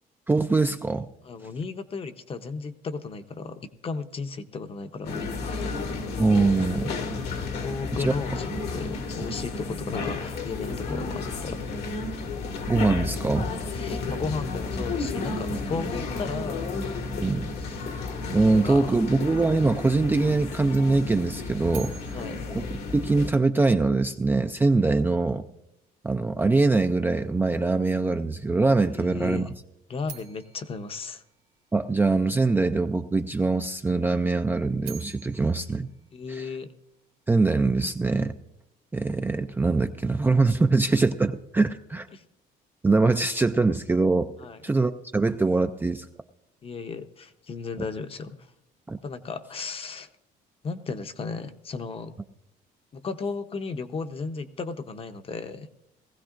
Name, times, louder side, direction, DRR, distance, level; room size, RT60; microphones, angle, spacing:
voice 1, 0.3-1.1 6.2-6.9 7.9-8.1 12.7-13.5 17.2-17.5 17.9-18.0 18.3-22.2 22.5-22.6 22.9-25.4 26.0-29.5 31.7-35.9 36.3-36.5 37.3-38.4 38.9-42.1 42.8-44.3 44.6-46.0 48.9-49.0, right 3 dB, 10° right, 7 dB, 0.4 m, -23 dB
voice 2, 1.2-5.8 7.6-11.6 13.7-16.7 17.6-17.9 18.6-18.8 22.1-22.4 28.9-29.5 29.9-31.2 36.1-36.7 42.1-42.2 44.4-44.6 46.6-48.4 49.0-50.1 50.6-52.1 52.9-55.7, left 4 dB, 35° left, 9 dB, 0.8 m, -35 dB
sound 1, 5.0-23.3, left 3 dB, 75° left, 1.6 m, -32 dB
sound 2, 21.7-23.8 30.0-32.2 34.6-37.0, right 9 dB, 85° right, 1.5 m, -48 dB
19.0 x 15.5 x 2.5 m, 0.84 s
cardioid pair, 110°, 17 cm